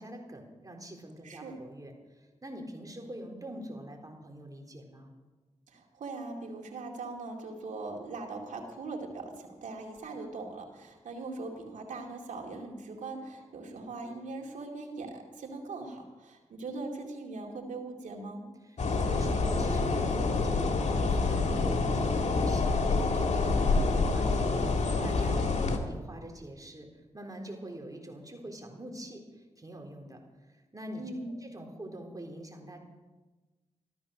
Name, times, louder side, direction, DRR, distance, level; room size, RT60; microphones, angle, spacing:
voice 1, 0.0-5.1 18.6-25.5 25.9-30.2 30.7-31.1 31.4-32.8, right 1 dB, 30° right, 2 dB, 3.9 m, -44 dB
voice 2, 1.2-1.6 5.7-18.5 25.3-25.6 31.0-31.4, right 3 dB, 90° right, 1 dB, 2.4 m, -40 dB
sound 1, 18.8-25.8, left 3 dB, 65° left, 2.0 m, -27 dB
14.5 x 13.0 x 6.4 m, 1.2 s
cardioid pair, 45°, 12 cm